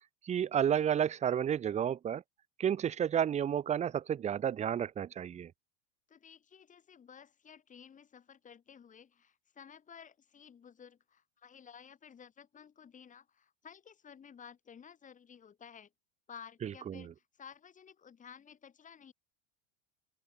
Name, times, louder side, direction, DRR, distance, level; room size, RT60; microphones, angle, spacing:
voice 1, 0.2-2.2 2.6-5.5 16.6-17.0, right 9 dB, 20° right, 0.9 m, -31 dB
voice 2, 6.1-15.9 16.3-19.1, left 7 dB, 20° left, 5.0 m, -54 dB
open air
supercardioid pair, 145°, 36 cm